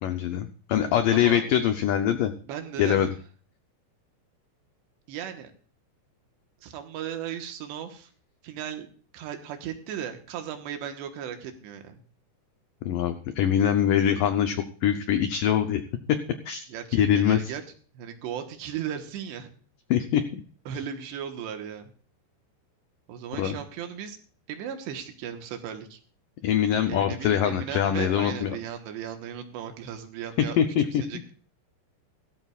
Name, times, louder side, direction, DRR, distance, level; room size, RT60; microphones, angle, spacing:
voice 1, 0.0-2.3 2.8-3.1 12.9-14.6 14.8-15.8 16.5-16.6 16.9-17.4 19.9-20.4 23.4-23.6 26.4-28.6 30.6-31.0, left 9 dB, 85° left, 8 dB, 1.9 m, -23 dB
voice 2, 1.1-1.5 2.5-3.1 5.1-5.5 6.6-8.1 8.4-8.9 9.1-12.0 16.7-17.6 17.9-19.5 20.7-21.9 23.1-24.2 24.5-26.0 26.9-31.3, right 9 dB, 80° right, 6 dB, 3.4 m, -36 dB
17.0 x 14.0 x 2.4 m, 0.42 s
omnidirectional pair, 4.9 m